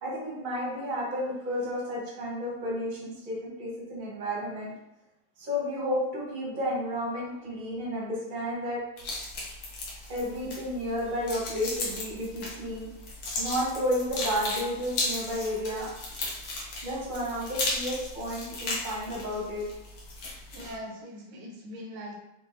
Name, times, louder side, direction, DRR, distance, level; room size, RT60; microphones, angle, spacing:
voice 1, 0.0-4.7 5.4-8.8 10.1-12.9 13.4-15.9 16.8-19.7, equal, 25° right, -5 dB, 1.2 m, -32 dB
sound 1, 9.0-20.8, left 2 dB, 60° left, 1.4 m, -36 dB
voice 2, 20.5-22.2, equal, 80° right, -1 dB, 1.7 m, -41 dB
4.7 x 3.6 x 2.7 m, 0.93 s
omnidirectional pair, 2.3 m